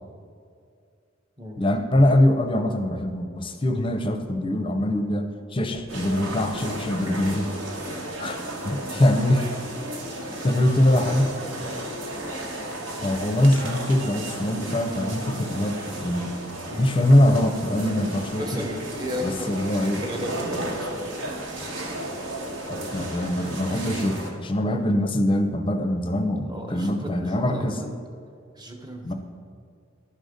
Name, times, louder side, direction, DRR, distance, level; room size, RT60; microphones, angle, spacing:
voice 1, 1.6-5.3 5.5-7.5 8.2-8.4 8.6-9.5 10.4-11.3 13.0-16.3 16.8-18.6 19.2-20.0 22.7-27.8 29.0-29.1, left 1 dB, 25° left, 6 dB, 0.6 m, -23 dB
sound 1, 5.9-24.3, right 1 dB, 75° right, 1.2 m, -33 dB
voice 2, 18.4-21.1 26.5-28.0 28.6-29.1, equal, 20° right, 2 dB, 0.9 m, -35 dB
11.5 x 4.0 x 5.1 m, 2.3 s
head